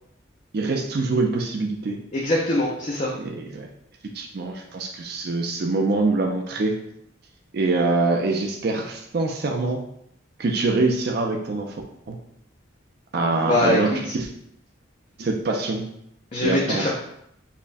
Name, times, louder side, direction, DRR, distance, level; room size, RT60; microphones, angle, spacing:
voice 1, 0.5-2.0 3.1-3.7 4.1-6.7 7.5-9.8 10.4-11.7 12.1-12.2 13.1-14.3 15.2-15.8 16.4-16.9, right 3 dB, 50° right, 2 dB, 0.4 m, -24 dB
voice 2, 2.1-3.1 13.4-13.8 16.3-16.9, left 1 dB, 35° left, -4 dB, 0.5 m, -22 dB
5.4 x 2.1 x 2.5 m, 0.74 s
head